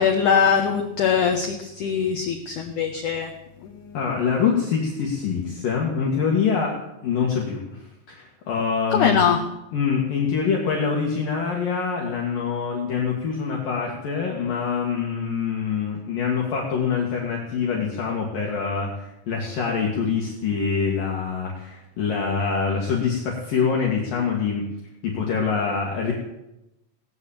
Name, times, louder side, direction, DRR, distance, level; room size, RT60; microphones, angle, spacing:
voice 1, 0.0-3.3 3.6-3.7 8.9-9.4, left 7 dB, 85° left, 3 dB, 1.7 m, -21 dB
voice 2, 3.9-6.8 7.0-9.3 9.7-24.6 25.0-26.1, left 6 dB, 55° left, -2 dB, 3.2 m, -25 dB
18.5 x 9.7 x 7.3 m, 0.91 s
omnidirectional pair, 5.2 m